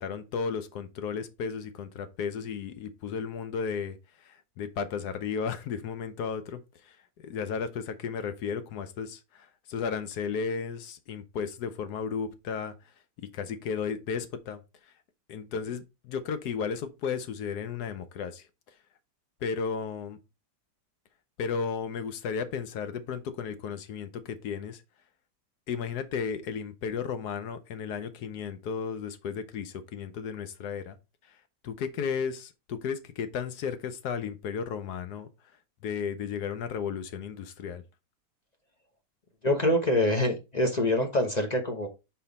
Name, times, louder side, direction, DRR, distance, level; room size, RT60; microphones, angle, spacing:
voice 1, 0.0-7.0 7.2-12.7 13.2-14.9 15.3-18.5 19.4-20.2 21.4-24.8 25.7-31.0 31.3-31.4 31.6-35.3 35.8-37.8, left 6 dB, 70° left, 1.2 m, -34 dB
voice 2, 39.4-41.9, left 1 dB, 30° left, 0.8 m, -25 dB
5.5 x 4.5 x 4.0 m
omnidirectional pair, 1.8 m